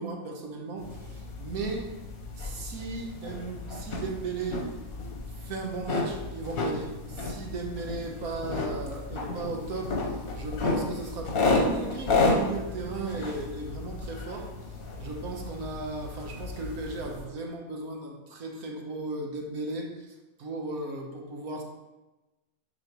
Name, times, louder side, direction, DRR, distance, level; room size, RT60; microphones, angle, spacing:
voice 1, 0.0-1.9 2.4-4.7 5.3-14.5 15.0-21.6, right 3 dB, 85° right, 1 dB, 1.5 m, -36 dB
sound 1, 0.8-17.3, left 3 dB, 75° left, 1.5 m, -32 dB
9.3 x 5.0 x 3.0 m, 1.1 s
omnidirectional pair, 1.5 m